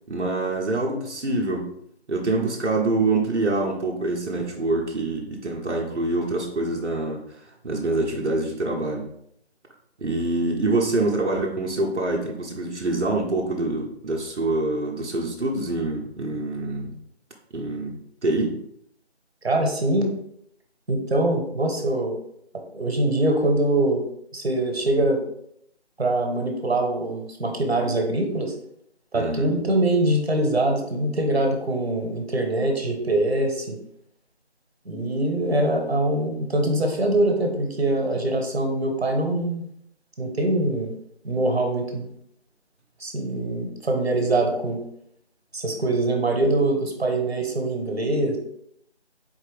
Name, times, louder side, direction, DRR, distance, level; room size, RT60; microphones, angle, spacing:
voice 1, 0.1-1.7 2.1-9.1 10.0-17.0 17.5-18.6 29.1-29.5, right 2 dB, 90° right, -1 dB, 0.9 m, -25 dB
voice 2, 19.4-20.1 20.9-22.2 22.7-24.0 24.3-25.2 26.0-28.5 29.1-33.8 34.8-39.6 40.2-40.9 41.2-42.1 43.0-44.8 45.5-48.4, right 1 dB, 65° right, 3 dB, 1.1 m, -23 dB
4.3 x 3.4 x 3.3 m, 0.73 s
figure-of-eight pair, 175°, 34 cm